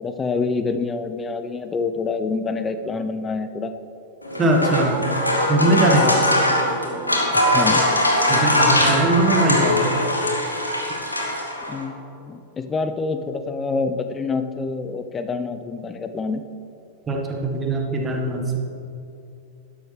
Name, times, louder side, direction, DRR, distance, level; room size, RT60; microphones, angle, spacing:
voice 1, 0.0-3.7 7.5-7.8 11.7-16.4, left 4 dB, 20° left, 9 dB, 0.7 m, -26 dB
sound 1, 4.2-11.8, left 1 dB, 85° left, 1.4 m, -21 dB
voice 2, 4.4-5.0 5.5-6.2 8.3-10.0 17.1-18.6, right 2 dB, 20° right, 1 dB, 1.6 m, -21 dB
12.0 x 10.5 x 3.4 m, 2.7 s
figure-of-eight pair, 90°, 0 cm